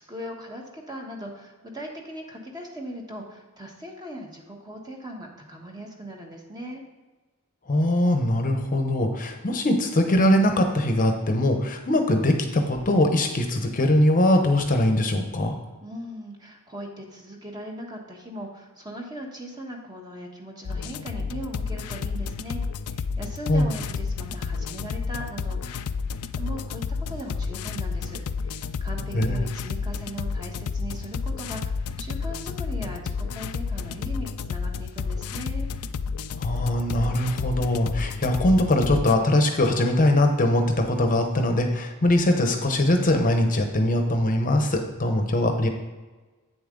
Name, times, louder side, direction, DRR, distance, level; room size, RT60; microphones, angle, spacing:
voice 1, 0.1-6.8 15.8-25.8 26.3-35.7, equal, 20° right, 0 dB, 1.3 m, -39 dB
voice 2, 7.7-15.5 23.5-23.7 29.1-29.4 36.4-45.7, left 1 dB, 40° left, 5 dB, 0.8 m, -22 dB
sound 1, 20.6-39.1, left 5 dB, 75° left, 0.4 m, -31 dB
8.6 x 7.0 x 3.8 m, 1.3 s
head